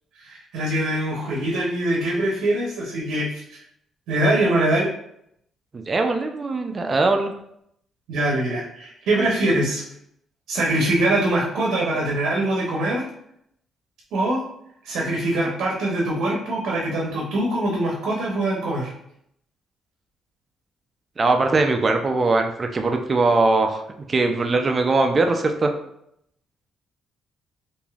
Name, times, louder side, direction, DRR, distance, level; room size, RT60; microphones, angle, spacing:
voice 1, 0.2-3.4 4.1-4.9 8.1-9.8 10.5-13.0 14.1-14.4 14.8-18.9, right 1 dB, 85° right, -3 dB, 0.7 m, -23 dB
voice 2, 5.7-7.3 21.2-23.8 24.1-25.7, right 3 dB, 35° right, 5 dB, 0.4 m, -21 dB
3.2 x 2.6 x 2.3 m, 0.74 s
cardioid pair, 90°, 0 cm